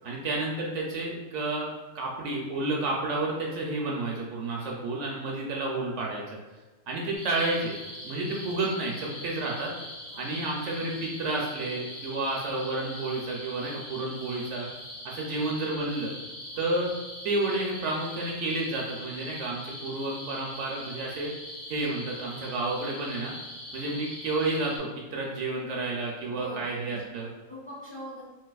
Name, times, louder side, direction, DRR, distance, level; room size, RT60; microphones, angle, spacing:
voice 1, 0.0-6.2 6.9-7.7 8.0-9.7 10.2-14.7 15.0-16.1 16.6-16.9 17.2-21.3 21.7-23.3 23.7-27.3, right 2 dB, 70° right, -2 dB, 0.8 m, -31 dB
sound 1, 7.1-24.8, left 1 dB, 80° left, 1.7 m, -42 dB
voice 2, 26.2-27.0 27.5-28.2, equal, 25° left, -8 dB, 0.6 m, -43 dB
3.9 x 2.3 x 2.3 m, 1.2 s
omnidirectional pair, 1.4 m